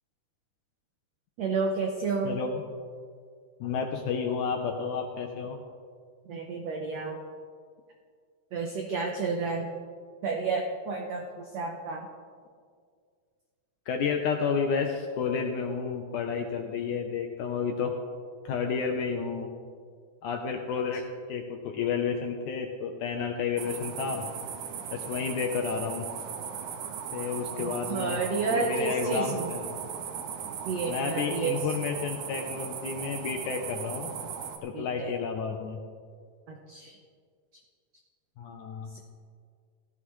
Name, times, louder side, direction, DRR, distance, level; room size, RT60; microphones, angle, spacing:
voice 1, 1.4-2.4 6.2-7.2 8.5-9.7 10.2-12.1 27.6-29.5 30.6-31.6 34.7-35.1 36.5-37.0 38.9-39.0, right 4 dB, 85° right, 1 dB, 1.4 m, -31 dB
voice 2, 2.3-2.6 3.6-5.6 13.9-17.9 18.5-19.5 20.2-21.0 21.3-24.2 24.9-26.1 27.1-28.2 28.5-29.8 30.9-34.1 34.6-35.8 38.4-38.9, left 6 dB, 75° left, 3 dB, 1.8 m, -31 dB
sound 1, 23.6-34.6, right 7 dB, 70° right, 2.1 m, -37 dB
17.0 x 13.0 x 3.1 m, 2.1 s
omnidirectional pair, 4.2 m